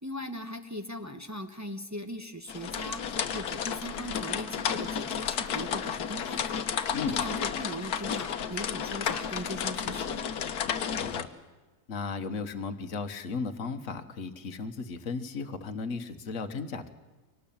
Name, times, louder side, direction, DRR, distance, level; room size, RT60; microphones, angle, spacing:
voice 1, 0.0-10.2, equal, 10° right, 6 dB, 1.2 m, -39 dB
sound 1, 2.5-11.2, left 7 dB, 75° left, 1.5 m, -32 dB
voice 2, 6.9-7.2 11.0-11.3 11.9-16.9, left 4 dB, 55° left, 6 dB, 1.7 m, -35 dB
24.0 x 18.5 x 8.7 m, 1.2 s
omnidirectional pair, 1.7 m